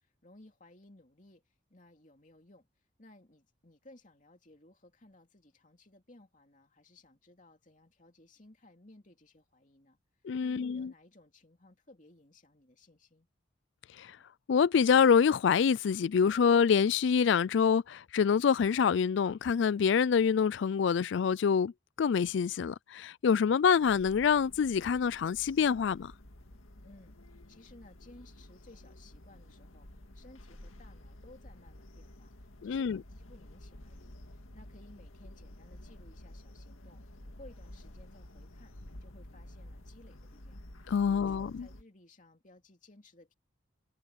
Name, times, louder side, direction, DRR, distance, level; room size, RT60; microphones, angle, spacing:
voice 1, 0.0-2.7 3.0-10.0 10.4-13.3 26.8-37.0 37.3-38.7 39.0-43.3, left 2 dB, 40° left, 2.8 m, -59 dB
voice 2, 10.2-10.9 14.0-14.1 14.5-21.7 22.0-26.1 32.6-33.0 40.9-41.5, left 6 dB, 65° left, 0.3 m, -26 dB
sound 1, 23.8-41.8, left 1 dB, 90° left, 2.1 m, -51 dB
head